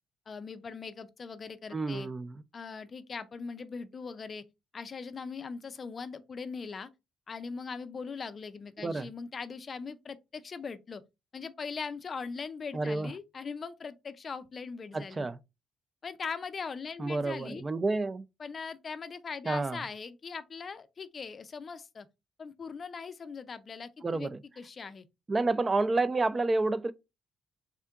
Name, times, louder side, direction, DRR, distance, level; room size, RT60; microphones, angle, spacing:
voice 1, 0.3-2.1 2.5-4.4 4.7-6.9 7.3-11.0 11.3-15.3 16.0-17.6 18.4-22.1 22.4-24.3 24.6-25.1, left 5 dB, 40° left, 0.4 m, -40 dB
voice 2, 1.7-2.4 8.8-9.1 12.7-13.1 14.9-15.4 17.0-18.3 19.5-19.8 24.0-24.4 25.3-26.9, right 3 dB, 25° right, 0.4 m, -29 dB
3.6 x 2.2 x 3.6 m
cardioid pair, 90°, 0 cm